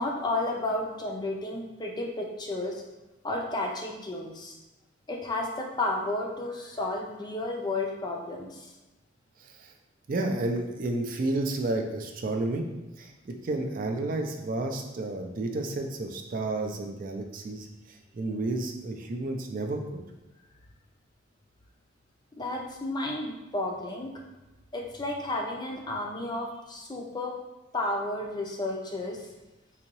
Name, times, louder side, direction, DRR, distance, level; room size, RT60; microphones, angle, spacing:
voice 1, 0.0-2.8 3.2-4.6 5.1-8.7 22.4-24.1 24.7-27.3 27.7-29.3, left 2 dB, 20° left, 0 dB, 0.4 m, -32 dB
voice 2, 9.4-9.7 10.1-12.7 13.0-19.8, right 2 dB, 45° right, 3 dB, 0.4 m, -31 dB
3.9 x 2.7 x 3.0 m, 1.1 s
head